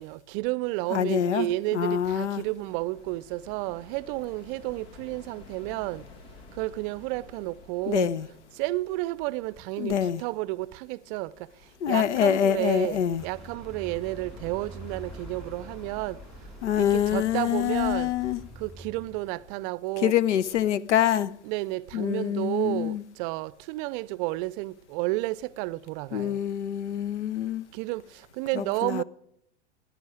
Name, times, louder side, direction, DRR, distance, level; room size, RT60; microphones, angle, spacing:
voice 1, 0.0-6.1 6.5-8.1 8.5-11.5 11.9-16.2 16.8-18.1 18.6-20.1 21.4-26.4 27.7-29.0, right 19 dB, 50° right, 0.5 m, -31 dB
voice 2, 0.9-2.4 7.9-8.3 9.8-10.2 11.8-13.2 16.6-18.4 20.0-21.3 21.9-23.0 26.1-27.7 28.5-29.0, left 10 dB, 85° left, 0.7 m, -25 dB
sound 1, 1.8-19.6, left 3 dB, 65° left, 2.2 m, -52 dB
Vehicle, 13.2-19.5, right 1 dB, ahead, 2.1 m, -46 dB
17.0 x 10.0 x 4.9 m
hypercardioid pair, 100°, 35 cm